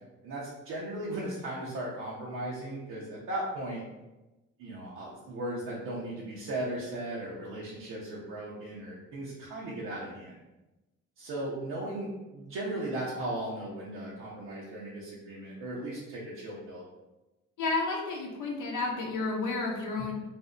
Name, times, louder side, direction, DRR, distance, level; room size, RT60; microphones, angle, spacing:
voice 1, 0.2-3.8 4.6-10.3 11.2-16.8 20.0-20.1, right 1 dB, 85° right, -6 dB, 0.7 m, -37 dB
voice 2, 17.6-20.1, left 3 dB, 80° left, -1 dB, 0.6 m, -31 dB
2.6 x 2.1 x 3.7 m, 1.0 s
cardioid pair, 90°, 30 cm